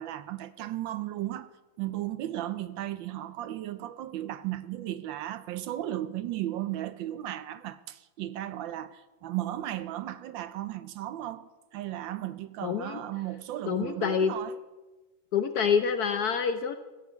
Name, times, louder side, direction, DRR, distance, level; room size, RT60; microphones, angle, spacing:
voice 1, 0.0-1.5 1.8-14.6, right 13 dB, 75° right, 1.3 m, -35 dB
voice 2, 12.6-13.0 13.7-14.3 15.3-16.8, left 6 dB, 65° left, 1.0 m, -27 dB
15.5 x 7.4 x 8.2 m
omnidirectional pair, 2.3 m